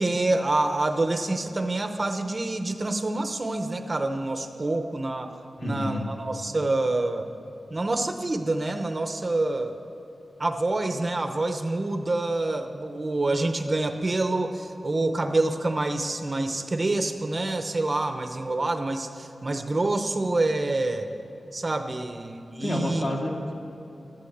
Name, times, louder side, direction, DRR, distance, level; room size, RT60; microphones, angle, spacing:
voice 1, 0.0-5.3 5.6-7.3 7.7-9.8 10.4-21.1 21.5-23.1, right 2 dB, 30° right, 6 dB, 0.7 m, -27 dB
voice 2, 5.6-6.0 22.6-23.5, left 1 dB, 50° left, -1 dB, 2.5 m, -29 dB
13.5 x 11.5 x 7.9 m, 2.9 s
wide cardioid pair, 150°, 0 cm